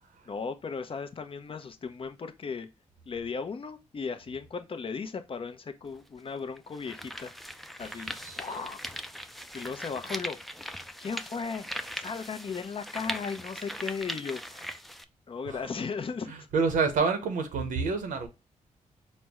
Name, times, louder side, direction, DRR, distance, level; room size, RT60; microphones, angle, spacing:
voice 1, 0.3-2.7 3.0-7.3 7.8-9.0 9.5-10.4 11.0-11.7 12.0-14.7 15.3-16.5, left 5 dB, 45° left, 0.6 m, -36 dB
sound 1, 5.8-5.9 6.6-15.0, equal, ahead, 0.4 m, -40 dB
voice 2, 16.3-18.3, right 4 dB, 85° right, 0.8 m, -28 dB
4.2 x 2.1 x 3.5 m
cardioid pair, 70°, 13 cm